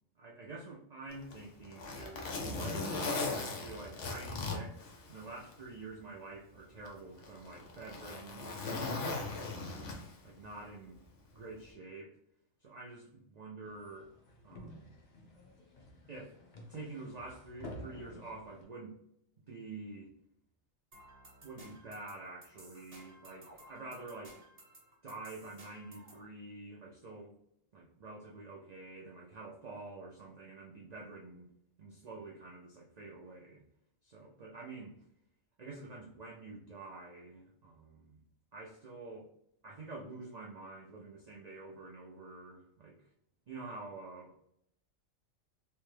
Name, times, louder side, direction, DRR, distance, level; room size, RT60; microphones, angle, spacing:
voice 1, 0.2-8.6 9.1-9.7 10.2-11.0 11.3-12.2 12.6-14.1 14.4-15.0 16.1-16.4 16.7-19.0 19.5-20.1 21.4-24.5 25.0-27.3 27.7-31.5 31.8-33.6 34.0-35.0 35.6-38.2 38.5-39.3 39.6-43.0 43.5-44.5, right 3 dB, 80° right, -3 dB, 0.3 m, -48 dB
Zipper (clothing), 1.1-5.6 6.0-6.1 6.9-10.3 11.5-11.7, left 3 dB, 65° left, 1.0 m, -38 dB
sound 1, 13.6-18.6, left 1 dB, 45° left, 0.6 m, -51 dB
sound 2, 20.9-26.2, right 1 dB, 30° right, 0.9 m, -57 dB
3.3 x 2.2 x 3.2 m, 0.74 s
omnidirectional pair, 1.4 m